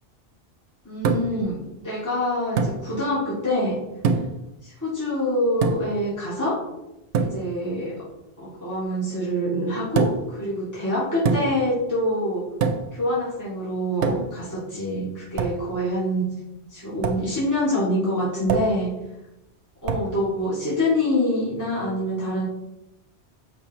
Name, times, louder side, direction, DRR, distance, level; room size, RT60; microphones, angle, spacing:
voice 1, 0.8-3.8 4.6-6.6 7.2-7.9 8.4-12.4 12.9-16.3 16.7-18.9 19.8-22.4, left 1 dB, 15° left, -11 dB, 2.5 m, -25 dB
sound 1, 1.0-1.5 2.6-2.8 4.0-4.4 5.6-6.0 7.1-7.4 10.0-10.3 11.3-11.7 12.6-13.0 14.0-14.4 15.4-15.6 17.0-17.3 18.5-18.8 19.9-20.1, right 5 dB, 85° right, 0.9 m, -24 dB
7.0 x 5.2 x 3.1 m, 0.92 s
omnidirectional pair, 1.1 m